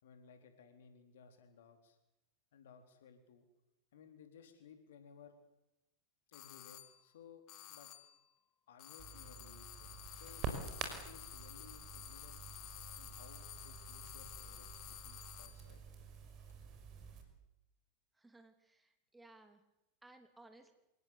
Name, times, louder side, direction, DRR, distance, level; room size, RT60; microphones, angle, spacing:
voice 1, 0.0-2.0 2.5-3.5 3.9-5.4 6.3-7.9 8.7-12.4 13.0-15.8, left 6 dB, 60° left, 7 dB, 4.1 m, -60 dB
sound 1, 6.3-7.0 7.5-8.2 8.8-15.7, left 14 dB, 40° left, 2.4 m, -52 dB
Crackle, 9.0-17.2, right 5 dB, 35° right, 5.5 m, -48 dB
voice 2, 18.2-19.6 20.0-20.7, right 2 dB, 10° right, 7 dB, 3.2 m, -60 dB
27.5 x 18.0 x 8.4 m, 0.92 s
figure-of-eight pair, 90°, 0 cm